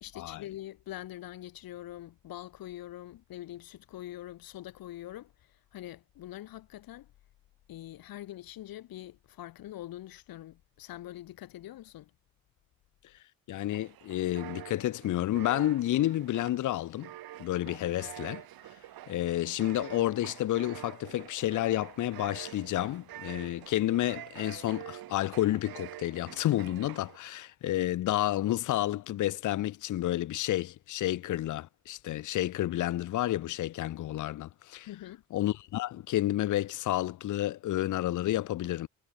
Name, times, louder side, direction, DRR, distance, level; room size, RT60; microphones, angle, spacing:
voice 1, 0.0-7.1 7.7-12.1 34.9-35.2, left 14 dB, 70° left, 2.0 m, -44 dB
voice 2, 13.5-17.1 17.4-18.4 19.1-34.9 35.3-38.9, left 14 dB, 55° left, 0.7 m, -30 dB
sound 1, 13.7-27.2, right 14 dB, 70° right, 2.6 m, -47 dB
cardioid pair, 90°, 37 cm